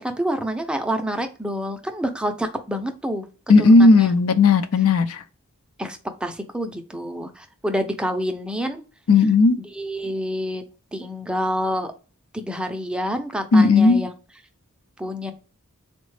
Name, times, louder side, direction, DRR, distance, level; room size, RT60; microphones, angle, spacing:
voice 1, 0.0-3.3 3.6-4.1 5.8-8.8 9.7-10.6 10.9-11.9 12.3-14.1 15.0-15.3, equal, 5° right, 0.4 m, -27 dB
voice 2, 3.5-5.2 9.1-9.6 13.5-14.0, left 3 dB, 85° left, 0.5 m, -15 dB
3.9 x 2.1 x 3.1 m
head